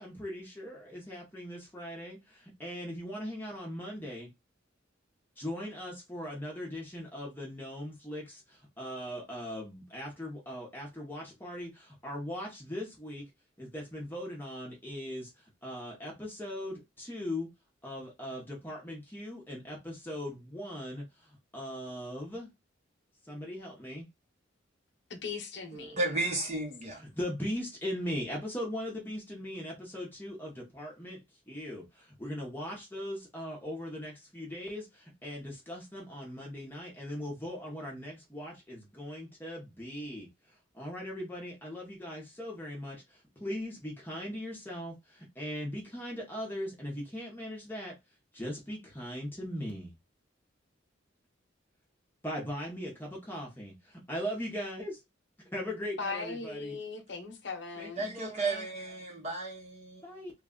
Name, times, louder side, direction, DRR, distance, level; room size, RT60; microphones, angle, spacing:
voice 1, 0.0-4.3 5.4-13.3 13.6-17.5 17.8-22.5 23.2-24.1 26.9-40.3 40.7-48.0 48.3-49.9 52.2-55.0 55.4-56.8 57.8-58.7 60.0-60.3, equal, 10° left, 0.8 m, -39 dB
voice 2, 25.1-26.0 56.0-58.2, left 4 dB, 60° left, 0.8 m, -39 dB
voice 3, 25.7-27.0 58.0-60.0, right 2 dB, 35° right, 0.8 m, -33 dB
3.2 x 2.3 x 3.7 m
head